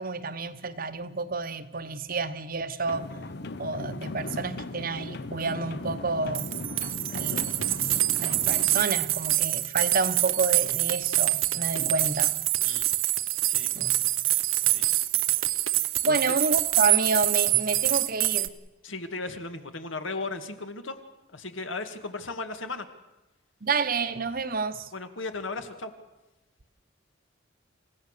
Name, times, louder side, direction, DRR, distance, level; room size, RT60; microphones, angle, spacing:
voice 1, 0.0-3.2 3.6-6.5 7.1-7.7 8.2-12.3 13.7-14.0 16.0-18.5 23.6-24.9, right 3 dB, 45° right, 1.0 m, -29 dB
sound 1, 2.9-8.9, left 2 dB, 55° left, 0.8 m, -37 dB
sound 2, 6.1-6.2 6.3-18.5, right 16 dB, 90° right, 0.9 m, -25 dB
voice 2, 18.8-21.0 21.3-22.9 24.9-25.9, left 3 dB, 75° left, 2.0 m, -36 dB
28.5 x 16.0 x 6.7 m
head